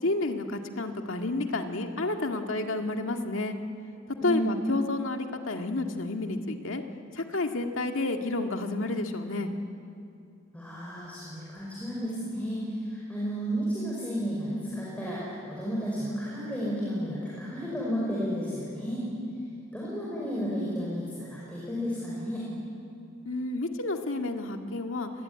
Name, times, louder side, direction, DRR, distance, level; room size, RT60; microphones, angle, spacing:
voice 1, 0.0-3.6 4.2-6.8 7.1-9.5 23.3-25.1, left 2 dB, 75° left, 4 dB, 1.9 m, -30 dB
voice 2, 4.2-4.5 10.5-19.0 19.7-22.4, equal, 5° left, -6 dB, 5.2 m, -32 dB
25.0 x 20.5 x 9.7 m, 2.5 s
head